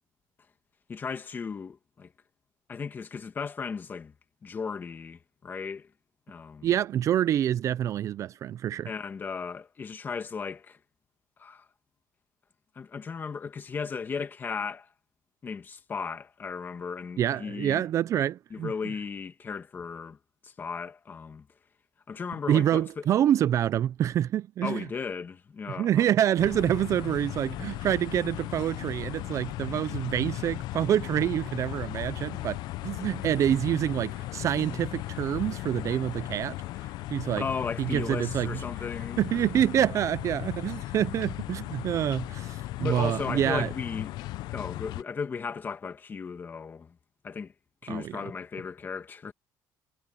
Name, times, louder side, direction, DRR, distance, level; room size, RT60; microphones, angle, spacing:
voice 1, 0.9-2.1 2.7-4.1 4.4-5.9 6.3-6.7 8.8-10.8 11.4-11.7 12.8-14.9 15.4-17.8 18.5-20.2 20.4-21.5 22.1-22.9 24.6-26.1 37.4-39.6 42.8-44.1 44.5-46.9 47.2-47.5 47.8-49.3, left 5 dB, 25° left, 2.0 m, -36 dB
voice 2, 6.6-8.9 17.2-18.7 22.5-24.9 25.8-36.5 37.1-37.4 37.8-38.6 39.2-43.7 47.9-48.2, right 11 dB, 40° right, 0.4 m, -27 dB
sound 1, 26.4-45.0, left 17 dB, 65° left, 0.5 m, -37 dB
cardioid pair, 150°, 8 cm